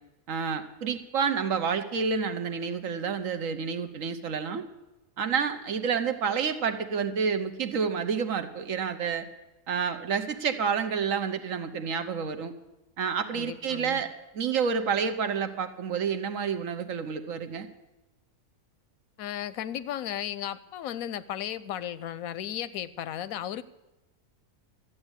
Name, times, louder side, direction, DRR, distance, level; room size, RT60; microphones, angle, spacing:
voice 1, 0.3-4.6 5.2-9.3 9.7-12.5 13.0-14.1 14.3-17.7, right 6 dB, 70° right, 8 dB, 1.4 m, -29 dB
voice 2, 13.3-14.0 19.2-23.6, left 11 dB, 90° left, 17 dB, 1.1 m, -35 dB
13.5 x 8.1 x 8.9 m, 1.0 s
omnidirectional pair, 1.4 m